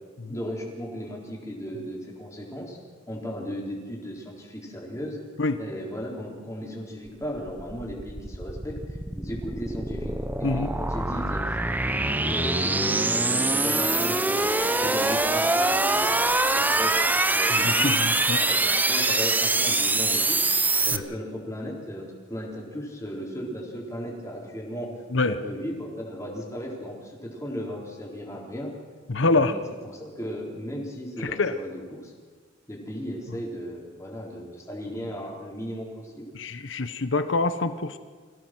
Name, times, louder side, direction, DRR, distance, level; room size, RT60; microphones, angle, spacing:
voice 1, 0.3-2.8 3.1-5.2 5.6-10.1 10.4-11.4 11.8-14.5 14.8-16.9 17.3-18.0 18.4-20.4 20.8-24.9 25.2-28.7 29.2-32.1 32.7-36.3, equal, 15° left, -2 dB, 4.0 m, -36 dB
sound 1, 7.3-21.0, right 2 dB, 10° right, 0.6 m, -24 dB
voice 2, 17.5-18.4 20.9-21.0 25.1-25.4 29.1-29.6 31.2-31.5 36.3-38.0, left 3 dB, 65° left, 11 dB, 0.9 m, -25 dB
25.0 x 17.0 x 6.2 m, 1.5 s
head